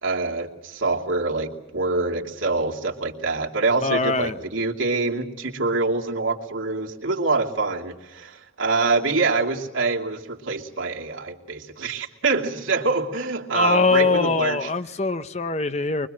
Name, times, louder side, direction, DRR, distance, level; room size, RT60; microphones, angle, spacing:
voice 1, 0.0-14.7, right 3 dB, 80° right, 2.8 m, -25 dB
voice 2, 3.8-4.4 13.5-16.1, left 3 dB, 35° left, 0.8 m, -22 dB
23.5 x 23.5 x 7.7 m
head